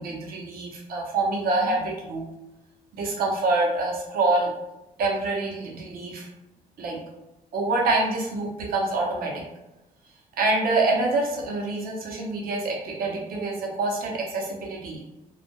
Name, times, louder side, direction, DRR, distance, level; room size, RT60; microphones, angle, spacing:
voice 1, 0.0-2.3 2.9-4.5 5.0-6.3 6.8-7.0 7.5-9.4 10.4-15.0, right 2 dB, 75° right, -2 dB, 0.8 m, -26 dB
2.3 x 2.1 x 2.9 m, 0.96 s
cardioid pair, 90°, 16 cm